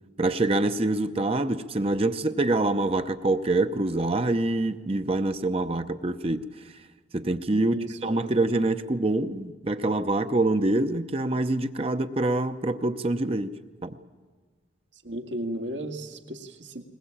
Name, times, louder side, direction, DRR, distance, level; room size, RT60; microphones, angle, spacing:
voice 1, 0.2-6.5 7.1-7.7 8.0-13.5 13.8-14.0, right 2 dB, 30° right, 9 dB, 0.7 m, -25 dB
voice 2, 7.6-8.4 14.9-16.8, right 1 dB, 80° right, 5 dB, 2.1 m, -34 dB
21.0 x 21.0 x 8.6 m, 1.5 s
head